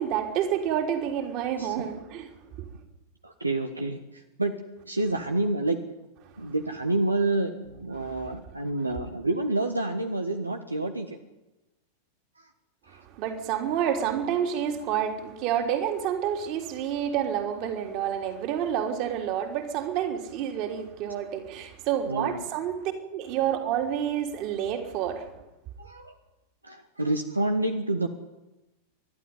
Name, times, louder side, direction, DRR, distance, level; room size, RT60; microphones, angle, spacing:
voice 1, 0.0-2.3 8.0-8.1 13.2-25.3, right 9 dB, 40° right, 3.5 m, -29 dB
voice 2, 3.2-4.0 4.4-4.5 4.8-5.8 6.4-11.1 12.9-13.0 14.1-14.4 22.1-22.4 25.8-26.1 26.6-28.1, right 2 dB, 85° right, 1.5 m, -28 dB
29.0 x 12.0 x 9.6 m
figure-of-eight pair, 90°, 0 cm